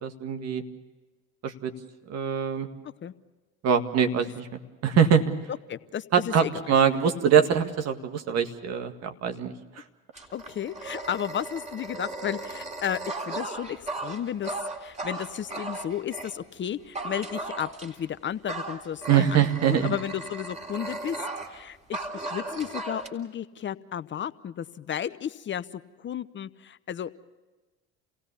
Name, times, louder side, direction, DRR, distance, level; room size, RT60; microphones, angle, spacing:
voice 1, 0.0-0.6 1.4-1.7 2.1-2.7 3.6-4.5 4.8-5.3 6.1-9.8 19.1-20.0, right 8 dB, 55° right, 6 dB, 2.0 m, -23 dB
voice 2, 5.7-6.8 10.3-13.0 13.3-14.5 14.8-25.7 26.0-27.2, left 9 dB, 35° left, 14 dB, 0.8 m, -33 dB
Dog, 10.1-16.3 16.9-18.1 18.5-21.6 21.9-23.1, right 2 dB, 20° right, 3.7 m, -36 dB
28.5 x 17.5 x 7.0 m, 1.2 s
hypercardioid pair, 70°, 31 cm